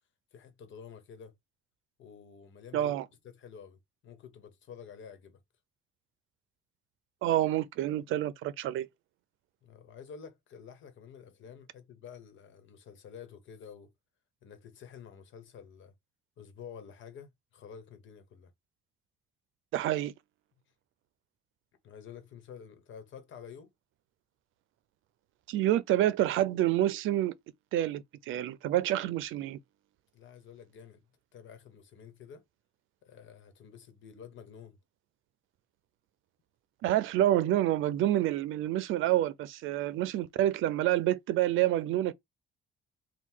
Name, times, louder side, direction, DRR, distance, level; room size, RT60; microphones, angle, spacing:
voice 1, 0.3-1.3 2.0-2.9 3.2-5.4 9.6-13.9 14.4-15.9 16.4-18.5 21.8-23.7 30.1-31.0 31.3-32.4 33.0-34.8 39.8-39.9, left 7 dB, 75° left, 1.2 m, -50 dB
voice 2, 2.7-3.1 7.2-8.9 19.7-20.1 25.5-27.3 27.7-29.6 36.8-42.1, right 13 dB, 85° right, 0.5 m, -28 dB
3.7 x 2.3 x 4.5 m
cardioid pair, 90°, 20 cm